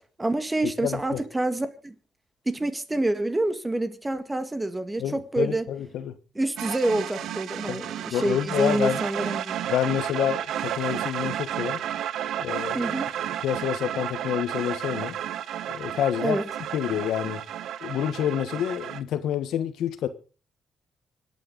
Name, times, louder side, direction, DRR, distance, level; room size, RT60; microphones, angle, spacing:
voice 1, 0.2-2.0 2.5-5.7 6.4-9.5 12.7-13.1 16.2-16.4, right 2 dB, 15° right, 1.8 m, -27 dB
voice 2, 0.8-1.2 5.0-6.2 7.7-9.0 9.7-11.8 12.4-12.9 13.4-15.2 15.7-16.4 16.7-17.4 17.8-20.1, left 10 dB, 80° left, 1.3 m, -28 dB
sound 1, 6.6-19.0, right 10 dB, 75° right, 0.7 m, -32 dB
25.5 x 9.1 x 4.0 m
cardioid pair, 90°, 0 cm